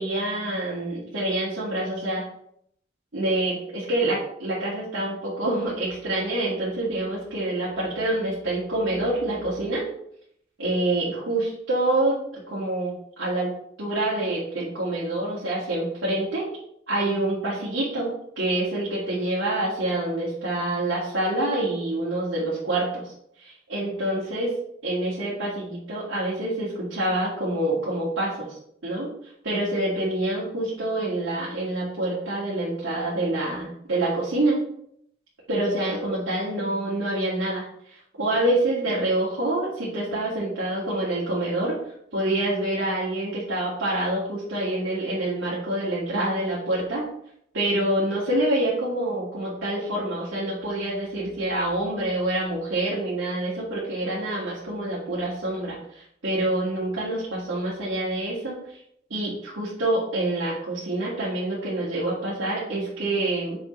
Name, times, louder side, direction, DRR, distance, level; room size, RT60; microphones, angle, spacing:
voice 1, 0.0-2.2 3.1-9.8 10.6-12.2 12.5-12.9 13.2-13.5 13.8-16.5 16.9-18.1 18.4-23.1 23.4-24.5 24.8-28.6 28.8-29.1 29.4-34.6 35.5-41.7 42.1-47.0 47.5-58.8 59.1-63.6, right 1 dB, 80° right, -8 dB, 2.1 m, -26 dB
6.9 x 5.3 x 3.2 m, 0.71 s
head